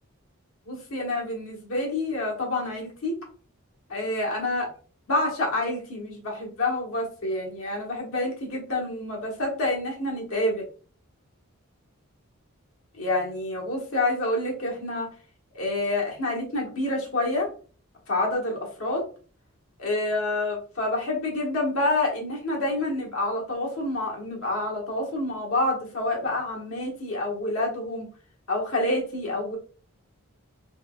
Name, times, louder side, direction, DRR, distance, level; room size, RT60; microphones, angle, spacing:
voice 1, 0.7-3.1 3.9-4.7 5.1-10.7 12.9-15.1 15.5-17.5 18.1-19.1 19.8-28.1 28.5-29.6, left 2 dB, 75° left, -1 dB, 1.2 m, -28 dB
3.5 x 2.9 x 2.3 m, 0.41 s
head